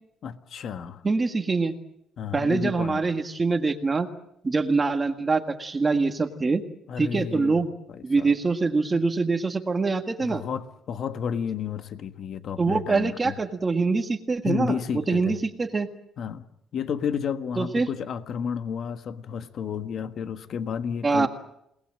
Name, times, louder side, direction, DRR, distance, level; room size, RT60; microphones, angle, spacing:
voice 1, 0.2-1.0 2.2-3.0 6.9-8.3 10.2-13.3 14.4-15.4 16.2-16.5 16.7-21.3, left 7 dB, 50° left, 9 dB, 1.4 m, -31 dB
voice 2, 1.0-1.7 2.3-4.1 4.4-6.6 7.0-7.7 8.0-10.4 12.6-15.9 17.6-17.9 21.0-21.3, right 4 dB, 20° right, 6 dB, 1.7 m, -24 dB
29.5 x 19.5 x 7.7 m, 0.78 s
cardioid pair, 145°, 0 cm